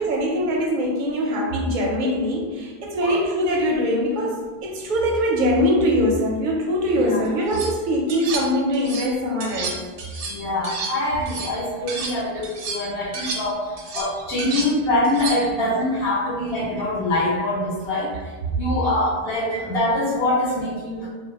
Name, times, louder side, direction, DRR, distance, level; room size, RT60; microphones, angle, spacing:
voice 1, 0.0-9.8 13.0-13.3 13.6-13.7 14.5-14.6 19.5-19.6, equal, 55° right, -1 dB, 0.6 m, -22 dB
sound 1, 7.3-7.7 8.1-9.1 9.4-12.2 12.4-15.6, right 4 dB, 90° right, 0.9 m, -32 dB
voice 2, 10.2-18.1 18.5-21.1, left 1 dB, 60° left, -8 dB, 1.3 m, -24 dB
2.6 x 2.1 x 2.8 m, 1.4 s
omnidirectional pair, 1.1 m